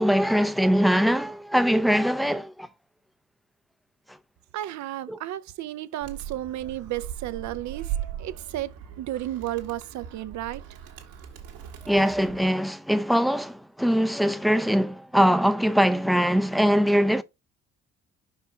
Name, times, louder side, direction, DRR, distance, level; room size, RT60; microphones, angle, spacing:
voice 1, 0.0-2.7 5.1-5.2 11.9-17.2, equal, ahead, 0.6 m, -22 dB
voice 2, 4.5-11.0, right 13 dB, 55° right, 0.7 m, -33 dB
Animal, 6.0-12.5, right 10 dB, 70° right, 1.7 m, -38 dB
5.5 x 4.7 x 5.1 m
hypercardioid pair, 50°, 35 cm